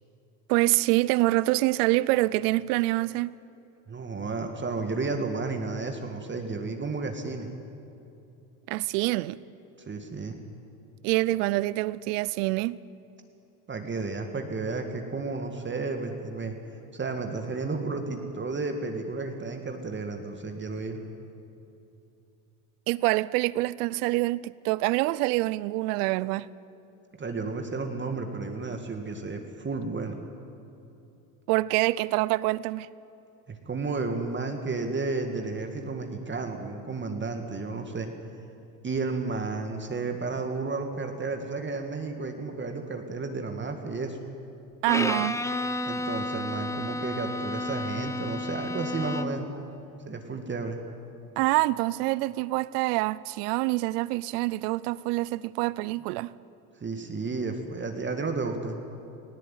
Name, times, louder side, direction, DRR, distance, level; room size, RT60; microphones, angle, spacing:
voice 1, 0.5-3.3 8.7-9.4 11.0-12.8 22.9-26.5 31.5-32.9 44.8-45.4 51.4-56.3, right 19 dB, 75° right, 0.7 m, -26 dB
voice 2, 3.9-7.5 9.9-10.4 13.7-16.6 16.9-21.0 27.2-30.2 33.5-38.1 38.8-44.2 45.0-45.1 45.8-49.5 50.1-50.8 56.8-58.8, right 3 dB, 25° right, 1.8 m, -32 dB
Bowed string instrument, 44.9-49.5, left 2 dB, 5° left, 0.8 m, -31 dB
18.5 x 16.5 x 9.1 m
supercardioid pair, 90°, 47 cm